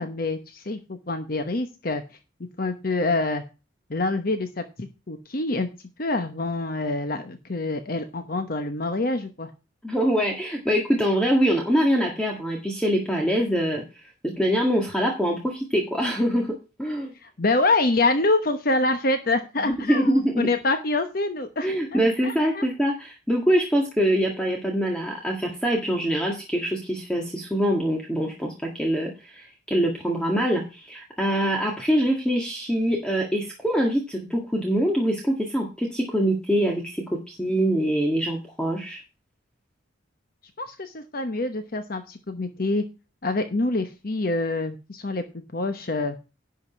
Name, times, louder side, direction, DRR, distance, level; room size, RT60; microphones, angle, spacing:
voice 1, 0.0-2.0 2.6-3.4 3.9-5.7 6.0-9.5 17.2-22.6 40.6-42.8 43.2-46.2, left 2 dB, 50° left, 8 dB, 1.0 m, -26 dB
voice 2, 9.8-13.8 14.2-17.1 19.9-20.5 21.6-39.0, equal, 5° left, 0 dB, 1.7 m, -24 dB
11.0 x 5.1 x 6.2 m, 0.30 s
head